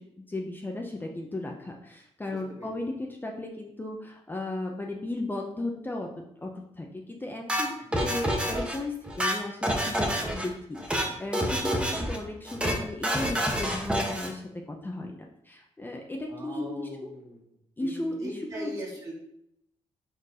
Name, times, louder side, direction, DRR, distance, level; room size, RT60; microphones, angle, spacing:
voice 1, 0.0-15.2 15.4-17.1 17.8-18.7, left 2 dB, 15° left, 0 dB, 0.8 m, -36 dB
voice 2, 2.3-2.7 8.0-8.5 16.3-17.4 17.8-19.1, right 1 dB, 30° right, -3 dB, 2.3 m, -40 dB
sound 1, 7.5-8.8 9.1-10.5 10.8-11.1 11.3-12.2 12.5-12.8 13.0-14.3, equal, 10° right, 1.2 m, -28 dB
4.6 x 4.5 x 4.9 m, 0.78 s
cardioid pair, 85°, 12 cm